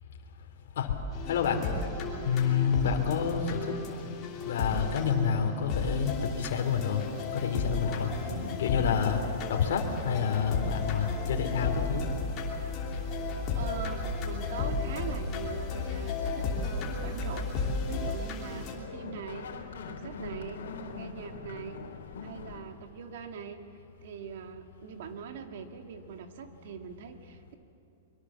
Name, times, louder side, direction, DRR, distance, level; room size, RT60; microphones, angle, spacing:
sound 1, 1.1-18.7, left 3 dB, 25° left, 2.9 m, -35 dB
voice 1, 1.3-1.6 2.2-3.8 4.4-7.0 7.3-8.1 8.6-9.2 9.5-12.1, left 7 dB, 65° left, 3 dB, 2.8 m, -28 dB
sound 2, 7.8-22.6, left 3 dB, 90° left, 3.1 m, -38 dB
voice 2, 8.2-8.7 11.0-11.4 13.5-19.5 19.8-20.7 20.9-21.8 22.2-27.5, right 6 dB, 55° right, 6 dB, 2.0 m, -42 dB
23.5 x 23.0 x 7.3 m, 2.9 s
supercardioid pair, 170°, 0 cm